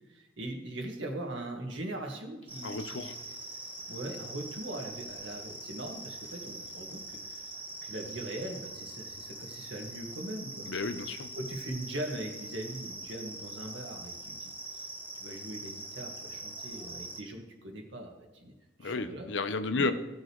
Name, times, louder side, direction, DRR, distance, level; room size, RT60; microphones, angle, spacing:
voice 1, 0.1-3.1 3.9-7.5 7.8-10.7 11.3-14.8 15.1-18.5 18.8-19.3 19.7-19.9, right 1 dB, 85° right, 2 dB, 1.8 m, -40 dB
sound 1, 2.5-17.2, right 2 dB, 10° right, 1.1 m, -43 dB
voice 2, 2.6-3.2 10.7-11.3 18.8-19.9, left 3 dB, 80° left, 10 dB, 0.8 m, -32 dB
16.5 x 6.4 x 3.1 m, 1.1 s
head